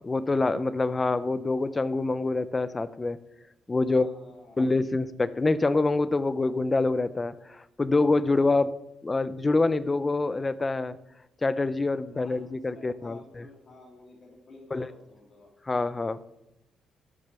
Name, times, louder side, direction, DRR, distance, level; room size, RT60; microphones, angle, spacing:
voice 1, 0.0-3.2 3.7-4.1 4.6-11.0 11.4-13.4 14.7-14.9 15.7-16.2, left 3 dB, 25° left, 15 dB, 0.7 m, -26 dB
voice 2, 3.8-4.7 12.1-12.4 12.7-15.5, left 2 dB, 45° left, -1 dB, 3.0 m, -51 dB
13.5 x 6.7 x 6.9 m, 0.88 s
cardioid pair, 90°, 0 cm